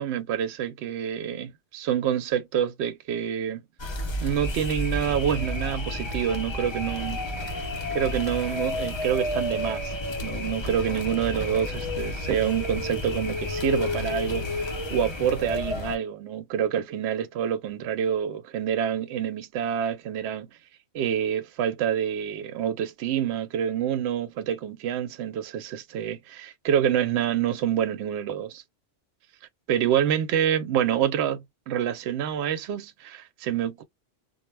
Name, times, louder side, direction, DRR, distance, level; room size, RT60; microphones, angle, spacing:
voice 1, 0.0-3.6 4.2-7.2 7.9-9.9 10.2-20.5 20.9-28.6 29.7-33.8, right 9 dB, 70° right, 0.8 m, -27 dB
sound 1, 3.8-16.0, left 1 dB, 40° left, 0.4 m, -31 dB
2.1 x 2.0 x 3.2 m
omnidirectional pair, 1.2 m